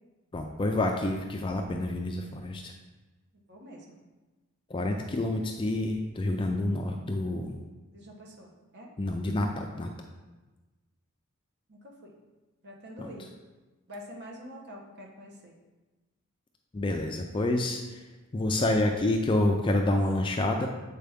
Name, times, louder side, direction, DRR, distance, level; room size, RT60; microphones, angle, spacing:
voice 1, 0.3-2.7 4.7-7.5 9.0-9.9 13.0-13.1 16.7-18.0 18.3-20.7, left 1 dB, 25° left, 3 dB, 0.4 m, -28 dB
voice 2, 3.5-3.9 7.9-8.9 11.7-12.1 12.6-13.3 13.9-15.6, equal, 50° right, -1 dB, 1.1 m, -46 dB
7.7 x 4.5 x 3.5 m, 1.2 s
head